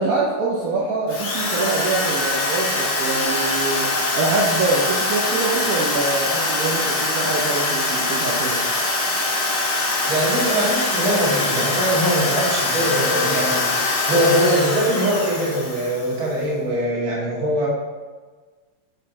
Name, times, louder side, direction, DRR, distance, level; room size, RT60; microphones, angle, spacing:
voice 1, 0.0-8.6, right 3 dB, 85° right, -3 dB, 0.7 m, -24 dB
Drill, 1.1-16.3, left 2 dB, 55° left, 0.8 m, -23 dB
voice 2, 10.1-17.7, right 1 dB, 70° right, -6 dB, 2.5 m, -22 dB
5.5 x 4.3 x 4.1 m, 1.4 s
omnidirectional pair, 2.4 m